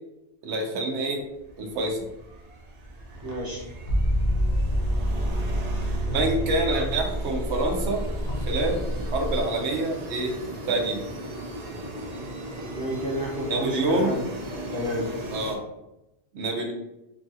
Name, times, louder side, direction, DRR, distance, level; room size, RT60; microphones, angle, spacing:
voice 1, 0.4-1.2 1.6-2.0 6.1-8.0 8.5-10.3 10.7-11.0 13.5-14.1 15.3-15.6 16.3-16.7, right 2 dB, 85° right, 1 dB, 0.9 m, -26 dB
sound 1, 1.4-15.6, right 2 dB, 55° right, 0.5 m, -37 dB
voice 2, 3.2-3.6 12.7-14.2 14.7-15.0, equal, 20° right, -5 dB, 0.7 m, -30 dB
sound 2, 3.9-9.4, equal, 50° left, 0.7 m, -27 dB
3.0 x 2.4 x 2.6 m, 0.92 s
omnidirectional pair, 1.1 m